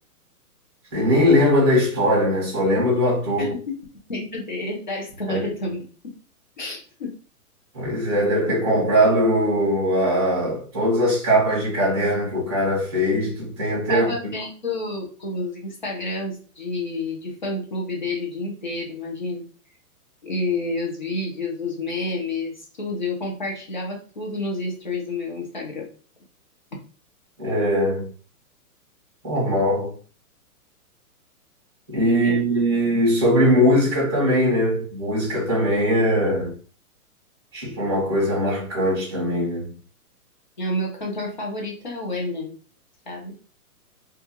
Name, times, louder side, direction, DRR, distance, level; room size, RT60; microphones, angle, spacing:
voice 1, 0.9-3.5 5.3-5.4 7.7-14.1 27.4-28.1 29.2-29.9 31.9-36.6 37.5-39.8, equal, 20° right, 0.5 m, -20 dB
voice 2, 3.4-3.7 4.1-5.8 6.6-7.1 13.9-19.4 20.2-25.9 32.1-32.4 40.6-42.5 43.1-43.3, left 2 dB, 35° left, 0.5 m, -29 dB
2.3 x 2.2 x 2.8 m
hypercardioid pair, 170°, 45 cm